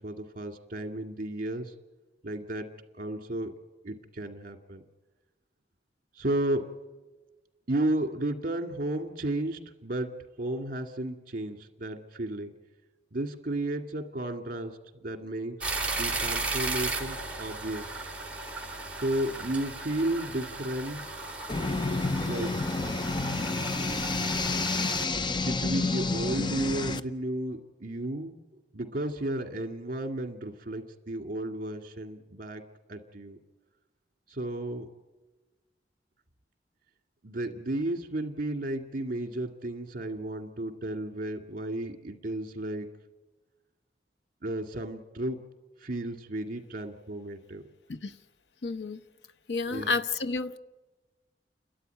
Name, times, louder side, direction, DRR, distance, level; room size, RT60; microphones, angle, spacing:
voice 1, 0.0-1.7 2.2-2.7 3.0-3.5 3.8-4.8 6.2-6.7 7.7-12.5 13.1-17.9 19.0-21.1 22.3-22.5 25.3-28.3 28.7-32.6 32.9-33.4 34.3-34.9 37.2-42.9 44.4-45.4 45.8-47.6 49.7-49.9, right 1 dB, 50° right, 2.0 m, -33 dB
sound 1, 15.6-25.0, right 3 dB, 10° right, 2.5 m, -35 dB
sound 2, 21.5-27.0, left 3 dB, 25° left, 0.6 m, -29 dB
voice 2, 48.6-49.0 49.5-50.6, left 3 dB, 80° left, 0.9 m, -30 dB
29.5 x 12.5 x 9.4 m
head